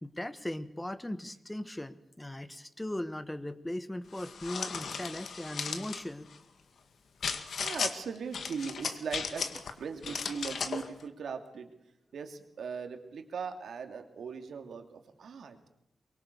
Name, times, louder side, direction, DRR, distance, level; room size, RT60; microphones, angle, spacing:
voice 1, 0.0-6.3, left 1 dB, 10° left, 12 dB, 1.3 m, -38 dB
sound 1, 4.1-6.0 7.2-7.9 8.3-9.7 10.0-10.9, left 5 dB, 75° left, 2.0 m, -36 dB
voice 2, 7.6-11.7 12.1-15.6, right 6 dB, 85° right, 6 dB, 2.8 m, -39 dB
23.5 x 23.0 x 6.9 m, 0.79 s
wide cardioid pair, 140°, 0 cm